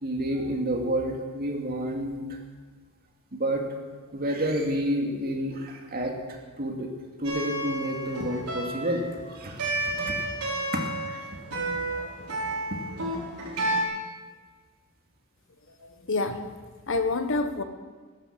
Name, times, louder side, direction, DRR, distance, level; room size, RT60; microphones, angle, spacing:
voice 1, 0.0-2.2 3.3-3.6 4.1-6.1 6.6-6.9 7.2-9.6 9.9-10.2 10.7-12.3 12.7-12.8, right 1 dB, 45° right, 2 dB, 2.5 m, -30 dB
sound 1, 7.2-13.8, right 2 dB, 80° right, 5.2 m, -31 dB
voice 2, 15.8-16.4 16.9-17.6, left 3 dB, 60° left, 8 dB, 1.3 m, -27 dB
14.0 x 12.0 x 7.6 m, 1.5 s
head